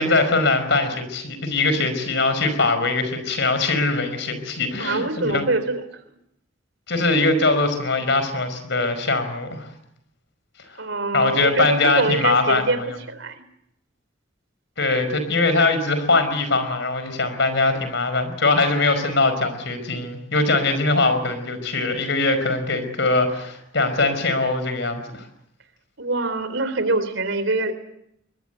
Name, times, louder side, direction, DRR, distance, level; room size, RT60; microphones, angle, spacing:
voice 1, 0.0-5.4 6.9-9.7 11.1-12.9 14.8-25.3, left 3 dB, 65° left, 10 dB, 5.2 m, -21 dB
voice 2, 4.8-5.8 10.8-13.4 26.0-27.7, right 2 dB, 75° right, 11 dB, 3.7 m, -24 dB
23.5 x 21.0 x 8.2 m, 0.77 s
head